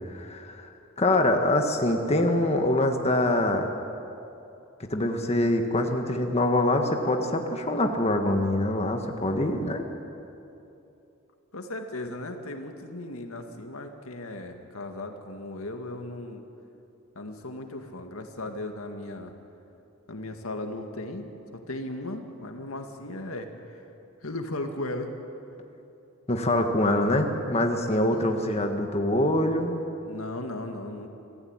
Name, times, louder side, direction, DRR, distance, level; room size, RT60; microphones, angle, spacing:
voice 1, 0.1-0.6 1.0-3.7 4.9-9.8 26.3-29.8, left 1 dB, 30° left, 4 dB, 1.5 m, -24 dB
voice 2, 11.5-16.4 17.2-19.3 20.1-21.3 21.5-23.8 24.2-25.1 28.1-28.4 30.0-31.1, left 2 dB, 85° left, 5 dB, 2.0 m, -36 dB
26.0 x 15.5 x 9.0 m, 2.8 s
head